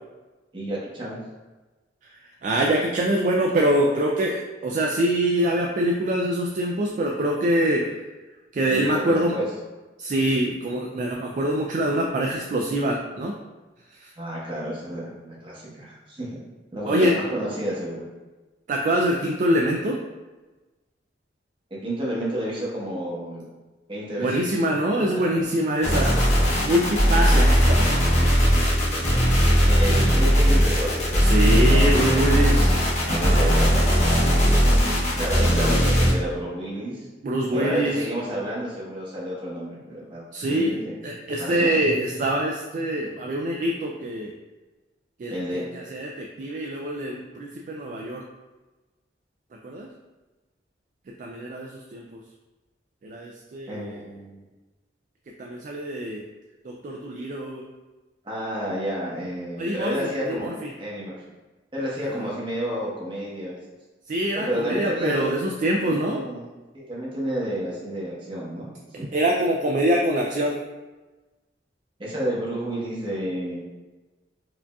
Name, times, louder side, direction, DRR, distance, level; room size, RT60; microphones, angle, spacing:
voice 1, 0.5-1.2 8.6-9.5 14.2-16.3 16.7-18.0 21.7-23.4 23.9-24.6 24.9-25.3 27.3-27.5 29.0-29.1 29.6-32.2 33.1-34.6 35.2-37.1 37.5-40.9 41.4-41.9 45.3-45.6 53.7-54.4 58.2-60.5 60.8-61.2 61.7-63.6 64.3-65.2 65.8-66.4 66.7-68.7 69.0-69.1 72.0-73.6, equal, 30° right, -6 dB, 1.0 m, -30 dB
voice 2, 2.4-7.8 8.5-9.4 10.0-13.3 16.9-17.1 18.7-20.0 24.2-26.2 26.6-27.8 28.3-28.4 31.2-32.7 33.0-33.4 35.7-35.8 37.2-37.9 40.3-40.7 41.0-44.3 45.2-45.6 45.9-48.2 49.6-49.9 51.2-52.0 53.0-53.9 55.4-56.2 56.8-57.7 59.6-60.5 64.1-66.2 69.1-70.6, right 1 dB, 45° right, 0 dB, 0.3 m, -24 dB
sound 1, 25.8-36.1, equal, 40° left, 0.7 m, -19 dB
4.8 x 2.6 x 2.3 m, 1.2 s
head